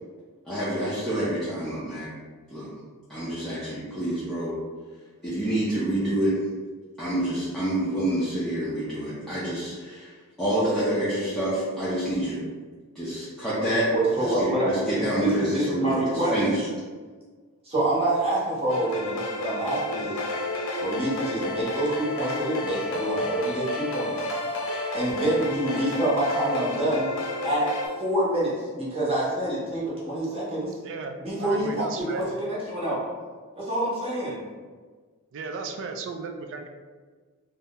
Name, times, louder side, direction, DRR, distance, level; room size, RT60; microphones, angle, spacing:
voice 1, 0.5-2.1 2.5-2.7 3.1-4.6 5.2-6.4 7.0-10.1 10.4-12.4 13.0-13.9 14.2-16.7, right 1 dB, ahead, -11 dB, 0.5 m, -27 dB
voice 2, 13.9-16.4 17.6-20.2 20.8-24.1 24.9-27.1 27.4-27.7 28.0-30.7 31.2-33.0 33.6-34.4, right 1 dB, 25° right, -7 dB, 0.8 m, -26 dB
sound 1, 18.7-27.9, left 2 dB, 60° left, 0.6 m, -31 dB
voice 3, 30.8-32.3 35.3-36.7, right 4 dB, 55° right, 5 dB, 0.3 m, -35 dB
2.7 x 2.0 x 3.5 m, 1.5 s
head